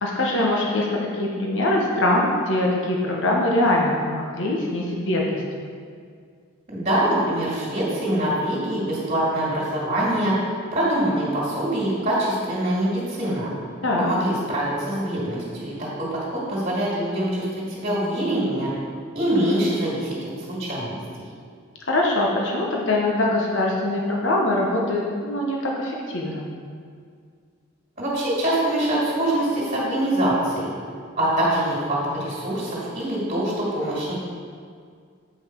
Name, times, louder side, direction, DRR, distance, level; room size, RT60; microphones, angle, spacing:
voice 1, 0.0-5.4 13.8-14.1 21.9-26.4, left 1 dB, 65° left, -2 dB, 1.1 m, -23 dB
voice 2, 6.7-13.5 14.0-17.4 17.7-18.7 19.1-20.1 20.5-21.0 28.0-30.7 31.2-34.1, right 1 dB, 40° right, -7 dB, 2.2 m, -24 dB
8.0 x 5.4 x 4.6 m, 2.1 s
head